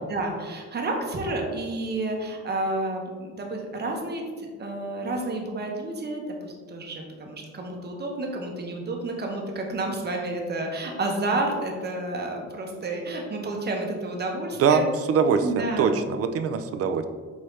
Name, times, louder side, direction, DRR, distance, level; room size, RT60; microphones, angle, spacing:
voice 1, 0.1-14.8 15.4-15.9, right 2 dB, 35° right, 1 dB, 0.8 m, -30 dB
voice 2, 15.1-17.0, right 6 dB, 50° right, 9 dB, 0.4 m, -22 dB
4.7 x 2.7 x 3.2 m, 1.5 s
cardioid pair, 90°, 30 cm